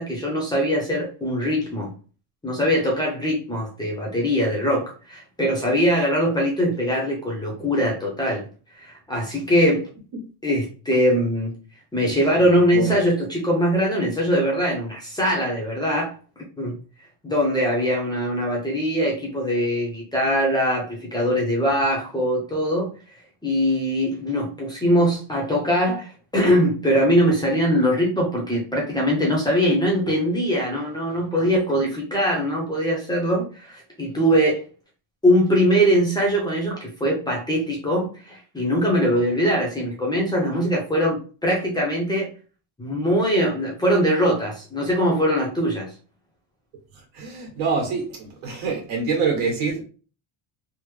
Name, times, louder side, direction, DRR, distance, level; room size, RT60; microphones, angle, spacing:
voice 1, 0.0-1.9 2.4-8.4 8.8-9.9 10.4-11.5 11.9-16.1 16.6-16.7 17.2-22.9 23.4-34.6 35.2-42.3 42.8-45.9, equal, 10° left, 0.6 m, -22 dB
voice 2, 47.1-49.8, right 5 dB, 80° right, 1.6 m, -25 dB
3.4 x 2.0 x 3.1 m
cardioid pair, 165°, 49 cm